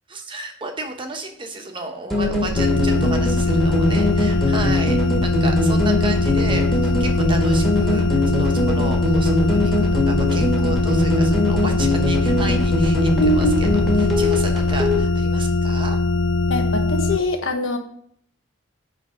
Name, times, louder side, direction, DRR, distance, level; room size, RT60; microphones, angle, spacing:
voice 1, 0.1-16.0, right 2 dB, 25° right, 3 dB, 1.0 m, -33 dB
sound 1, 2.1-15.0, left 1 dB, ahead, 1.6 m, -21 dB
sound 2, 2.5-17.2, left 3 dB, 60° left, 0.5 m, -21 dB
voice 2, 16.5-17.8, left 3 dB, 80° left, 5 dB, 1.2 m, -24 dB
10.0 x 3.3 x 6.2 m, 0.66 s
head